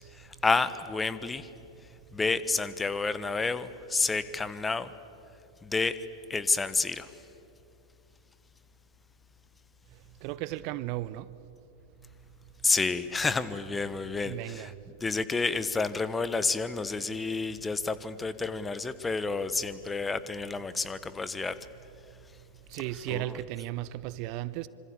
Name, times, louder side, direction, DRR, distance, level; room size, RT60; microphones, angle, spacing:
voice 1, 0.2-1.5 2.1-4.9 5.6-6.0 6.3-7.1 12.6-14.7 15.0-21.5 23.1-23.2, left 4 dB, 15° left, 1.2 m, -29 dB
voice 2, 10.2-11.3 14.2-14.7 22.7-24.7, right 15 dB, 45° right, 0.7 m, -35 dB
26.0 x 25.5 x 8.5 m
figure-of-eight pair, 90°, 0 cm